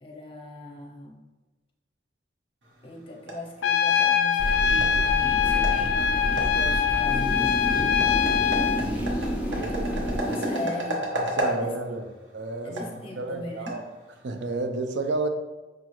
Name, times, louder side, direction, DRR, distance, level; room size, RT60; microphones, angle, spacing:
voice 1, 0.0-1.2 2.8-8.0 9.5-11.2 11.5-12.0 12.6-13.8, left 2 dB, 30° left, 1 dB, 0.6 m, -39 dB
sound 1, 2.6-14.4, equal, 90° right, 0.8 m, -35 dB
Trumpet, 3.6-8.8, left 8 dB, 90° left, 0.3 m, -23 dB
sound 2, 4.4-10.6, equal, 10° right, 0.6 m, -29 dB
voice 2, 9.5-10.5 11.1-12.8 13.2-13.8 14.2-15.3, right 2 dB, 75° right, 6 dB, 0.4 m, -31 dB
5.0 x 2.4 x 2.9 m, 1.2 s
head